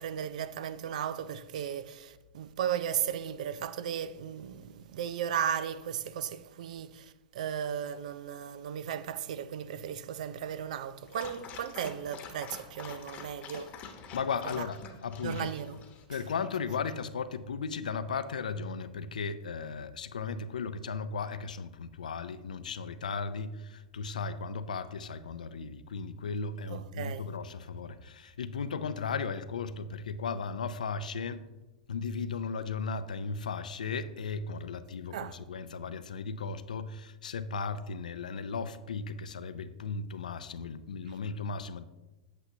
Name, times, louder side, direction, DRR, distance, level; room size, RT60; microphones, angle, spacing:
voice 1, 0.0-13.7 14.5-14.6 15.2-15.8 26.7-27.3 35.1-35.4, right 9 dB, 70° right, 0.5 m, -35 dB
Dog, 11.1-16.0, left 6 dB, 35° left, 1.0 m, -47 dB
voice 2, 14.1-15.5 16.1-31.5 31.9-41.8, left 5 dB, 85° left, 0.4 m, -36 dB
8.2 x 7.8 x 2.8 m
hypercardioid pair, 110°, 4 cm